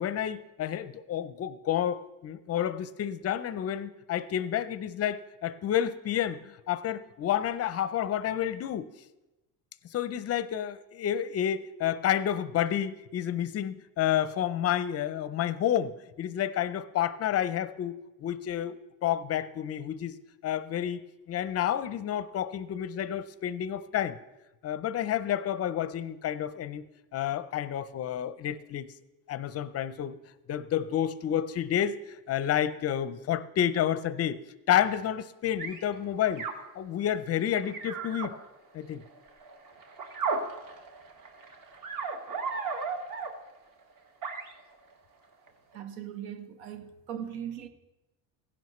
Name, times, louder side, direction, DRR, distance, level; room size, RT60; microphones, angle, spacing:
voice 1, 0.0-8.9 9.9-20.2 20.4-24.2 24.6-26.8 27.1-28.9 29.3-30.2 30.5-34.4 34.7-36.4 36.7-38.3 38.7-39.0, left 10 dB, 30° left, 0.5 m, -30 dB
sound 1, 35.6-35.9 36.4-36.5 37.5-38.3 39.1-43.3 44.2-44.8 45.5-45.6, right 4 dB, 45° right, 1.7 m, -35 dB
voice 2, 45.7-47.7, right 9 dB, 75° right, 1.3 m, -39 dB
16.0 x 10.5 x 3.1 m
supercardioid pair, 120°, 48 cm